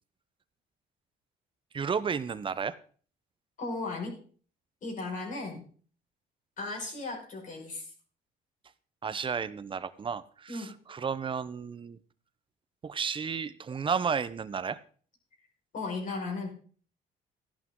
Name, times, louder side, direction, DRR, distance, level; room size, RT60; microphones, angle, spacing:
voice 1, 1.7-2.8 9.0-12.0 12.8-14.8, right 6 dB, 30° right, 15 dB, 0.8 m, -32 dB
voice 2, 3.6-4.2 4.8-5.6 6.6-7.9 10.5-10.7 15.7-16.5, left 3 dB, 50° left, 0 dB, 5.7 m, -36 dB
14.5 x 11.0 x 3.9 m, 0.43 s
cardioid pair, 110°, 17 cm